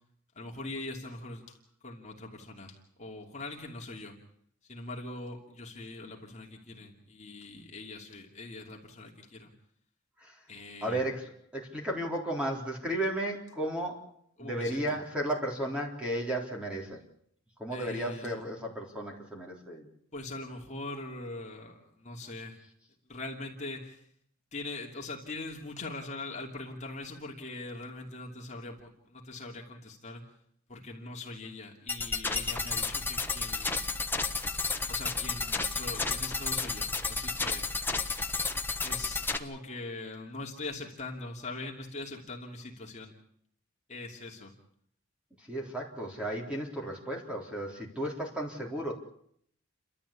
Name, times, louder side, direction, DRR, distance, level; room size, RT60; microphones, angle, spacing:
voice 1, 0.3-1.6 1.8-4.2 4.6-9.5 10.5-11.1 14.4-15.0 17.7-18.4 20.1-22.6 23.1-24.1 24.5-30.3 30.7-34.0 34.9-37.8 38.8-43.1 43.9-44.5, left 2 dB, 35° left, 0 dB, 2.9 m, -42 dB
voice 2, 10.8-14.1 14.4-17.0 17.6-19.9 45.4-48.9, right 1 dB, 5° right, -2 dB, 3.8 m, -34 dB
sound 1, 31.9-39.4, left 4 dB, 10° left, 1.2 m, -32 dB
29.5 x 13.0 x 8.5 m, 0.69 s
head